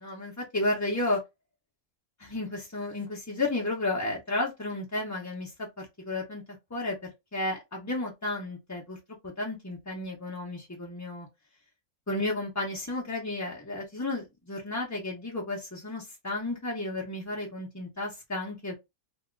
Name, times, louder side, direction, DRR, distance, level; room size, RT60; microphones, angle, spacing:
voice 1, 0.0-1.2 2.2-6.4 6.7-9.0 9.2-11.3 12.1-18.8, left 2 dB, 20° left, 0.5 m, -32 dB
2.7 x 2.3 x 3.7 m
omnidirectional pair, 1.6 m